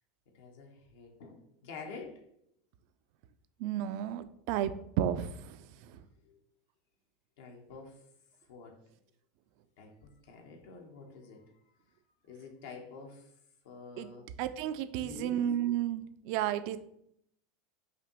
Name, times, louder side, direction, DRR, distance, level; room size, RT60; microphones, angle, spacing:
voice 1, 0.3-2.2 6.2-6.4 7.4-8.0 8.5-8.9 9.8-11.5 11.9-12.0 12.2-13.3 13.6-14.3 15.0-15.4, left 4 dB, 70° left, 2 dB, 0.8 m, -48 dB
voice 2, 3.6-5.6 14.0-14.1 14.4-16.8, right 11 dB, 60° right, 12 dB, 0.3 m, -32 dB
5.0 x 2.6 x 2.9 m, 0.74 s
hypercardioid pair, 90°, 0 cm